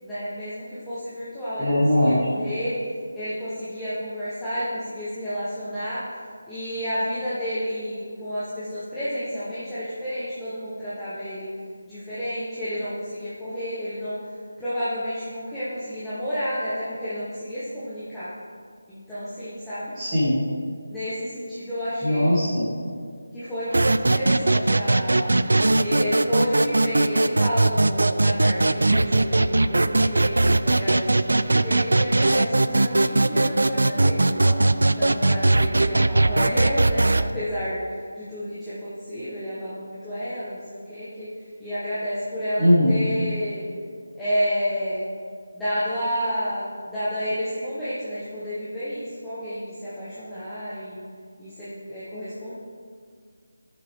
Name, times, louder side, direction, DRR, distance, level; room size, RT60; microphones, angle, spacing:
voice 1, 0.0-2.8 3.1-6.0 6.5-11.5 11.9-14.2 14.6-18.3 18.9-19.9 20.9-22.4 23.3-25.3 25.8-30.3 30.6-34.6 34.9-41.3 41.6-43.6 44.1-45.1 45.5-51.0 51.4-52.5, equal, 5° left, -15 dB, 1.0 m, -30 dB
voice 2, 1.6-2.3 20.0-20.4 22.0-22.7 42.6-42.9, left 1 dB, 15° right, -10 dB, 2.4 m, -20 dB
sound 1, 23.7-37.3, right 2 dB, 85° right, 0.4 m, -20 dB
13.0 x 6.9 x 3.5 m, 2.1 s
figure-of-eight pair, 175°, 0 cm